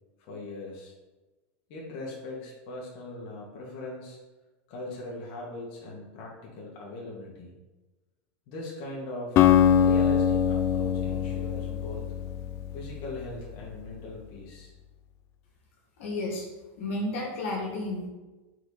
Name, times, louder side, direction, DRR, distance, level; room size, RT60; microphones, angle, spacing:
voice 1, 0.2-0.9 1.7-4.2 4.7-7.5 8.5-9.4 9.8-12.1 12.7-14.7, left 2 dB, 55° left, -4 dB, 1.6 m, -40 dB
Acoustic guitar, 9.4-13.5, left 9 dB, 40° left, 0.4 m, -23 dB
voice 2, 16.0-16.5 16.8-18.1, left 2 dB, 85° left, -2 dB, 1.8 m, -32 dB
4.7 x 4.2 x 4.8 m, 1.1 s
supercardioid pair, 140°, 7 cm